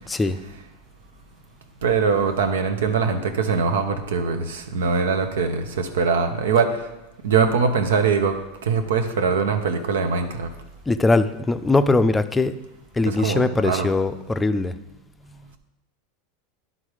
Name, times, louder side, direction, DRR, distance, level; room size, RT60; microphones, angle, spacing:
voice 1, 0.1-0.4 10.9-12.6 12.9-14.7, left 3 dB, 10° left, 11 dB, 0.4 m, -21 dB
voice 2, 1.8-6.8 7.2-10.5 13.1-13.9, right 5 dB, 85° right, 7 dB, 0.8 m, -22 dB
10.5 x 3.8 x 4.8 m, 1.0 s
hypercardioid pair, 110°, 0 cm